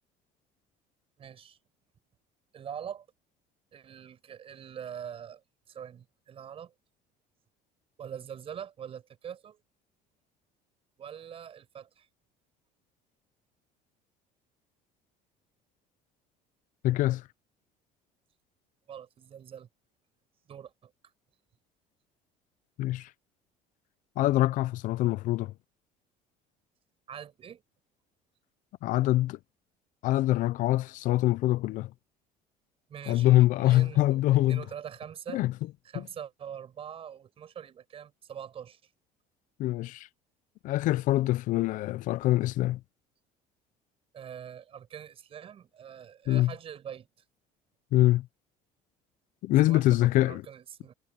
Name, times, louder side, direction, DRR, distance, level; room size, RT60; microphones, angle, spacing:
voice 1, 1.2-1.6 2.5-3.1 3.7-6.7 8.0-9.6 11.0-12.1 18.9-19.7 20.5-20.9 27.1-27.6 32.9-35.4 35.8-38.8 44.1-47.1 49.7-50.9, right 8 dB, 35° right, 6.2 m, -43 dB
voice 2, 16.8-17.2 22.8-23.1 24.2-25.5 28.8-29.4 30.0-31.9 33.1-34.6 35.3-35.5 39.6-40.1 40.6-42.8 46.3-46.5 47.9-48.3 49.4-50.4, left 16 dB, 55° left, 0.5 m, -24 dB
cardioid pair, 145°, 16 cm